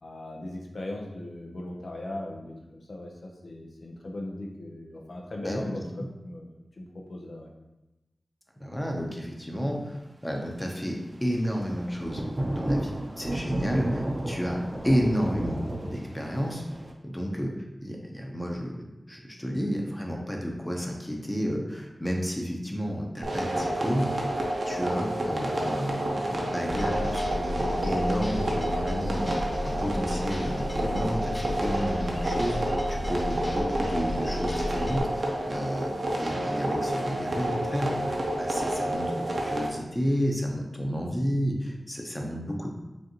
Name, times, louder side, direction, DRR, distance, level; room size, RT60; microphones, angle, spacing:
voice 1, 0.0-2.5 2.9-7.5, left 1 dB, 75° left, 0 dB, 0.6 m, -38 dB
voice 2, 5.4-5.8 8.6-12.2 12.6-14.6 14.8-16.6 17.0-17.5 17.8-18.8 19.1-24.1 24.6-42.7, equal, 10° left, 0 dB, 0.7 m, -31 dB
Thunder / Rain, 11.4-16.9, right 1 dB, 35° right, 0.6 m, -33 dB
sound 1, 23.2-39.7, right 1 dB, 75° right, 0.7 m, -30 dB
sound 2, 26.7-35.0, left 1 dB, 45° left, 0.8 m, -34 dB
5.2 x 2.5 x 3.0 m, 1.0 s
wide cardioid pair, 50°, 0 cm